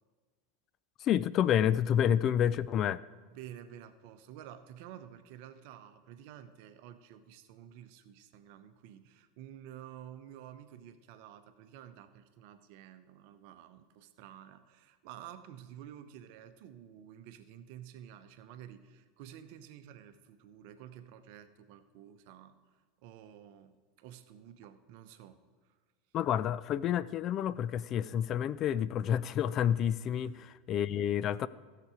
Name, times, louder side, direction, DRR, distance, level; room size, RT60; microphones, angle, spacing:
voice 1, 1.0-3.0 26.1-30.3 30.7-31.5, left 9 dB, 40° left, 17 dB, 0.3 m, -29 dB
voice 2, 3.3-22.6 23.0-25.4 30.2-30.5, right 10 dB, 55° right, 10 dB, 0.7 m, -51 dB
15.0 x 6.7 x 4.9 m, 1.4 s
figure-of-eight pair, 80°, 0 cm